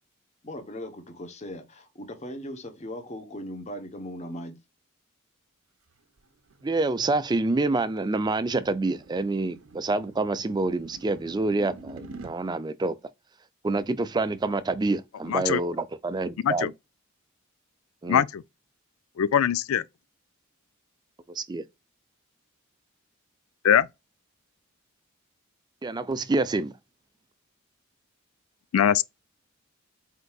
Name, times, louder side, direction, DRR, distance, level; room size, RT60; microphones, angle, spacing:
voice 1, 0.4-4.6, equal, 35° left, 0.9 m, -38 dB
sound 1, 5.9-12.3, right 3 dB, 85° right, 0.7 m, -48 dB
voice 2, 6.6-12.9 13.6-16.7 18.0-18.2 21.3-21.6 25.8-26.7, right 3 dB, 20° right, 0.4 m, -27 dB
voice 3, 15.3-15.6 16.4-16.7 18.1-18.4 19.2-19.8 23.6-23.9 28.7-29.0, left 9 dB, 85° left, 0.3 m, -22 dB
4.4 x 3.9 x 2.3 m
head